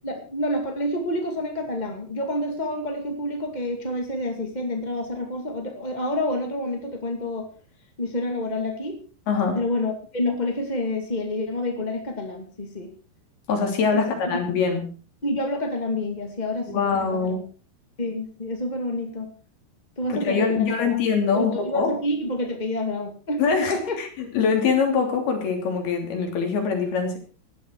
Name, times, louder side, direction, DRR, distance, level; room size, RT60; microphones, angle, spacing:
voice 1, 0.0-7.5 8.0-9.0 9.5-12.9 13.9-14.4 15.2-17.3 18.0-19.3 20.0-20.8 21.3-23.4 23.7-24.0, left 1 dB, 20° left, 3 dB, 1.3 m, -28 dB
voice 2, 9.3-9.6 13.5-14.8 16.7-17.4 20.1-21.9 23.4-27.2, left 5 dB, 70° left, 3 dB, 5.1 m, -23 dB
17.5 x 12.5 x 4.7 m, 0.38 s
omnidirectional pair, 4.6 m